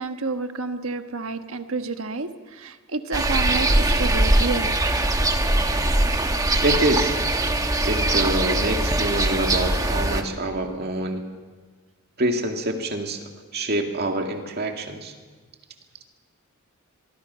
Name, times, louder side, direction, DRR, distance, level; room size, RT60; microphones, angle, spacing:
voice 1, 0.0-4.8, right 3 dB, 75° right, 7 dB, 1.3 m, -30 dB
sound 1, 3.1-10.2, right 1 dB, 15° right, 1.3 m, -21 dB
voice 2, 6.6-7.1 7.8-11.2 12.2-15.1, right 1 dB, 50° right, 3 dB, 2.3 m, -26 dB
23.5 x 23.5 x 5.7 m, 1.4 s
head